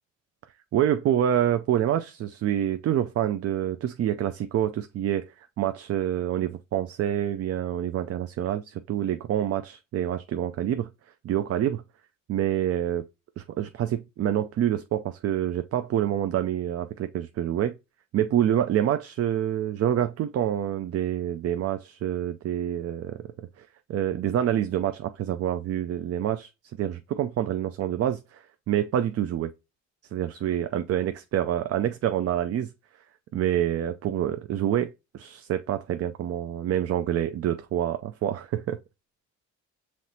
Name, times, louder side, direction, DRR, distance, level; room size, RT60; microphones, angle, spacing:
voice 1, 0.7-10.9 11.2-11.8 12.3-13.0 13.4-17.7 18.1-23.2 23.6-26.5 26.8-29.5 30.1-32.7 33.3-38.8, right 11 dB, 50° right, 0.4 m, -27 dB
5.7 x 3.1 x 2.7 m
cardioid pair, 90°, 30 cm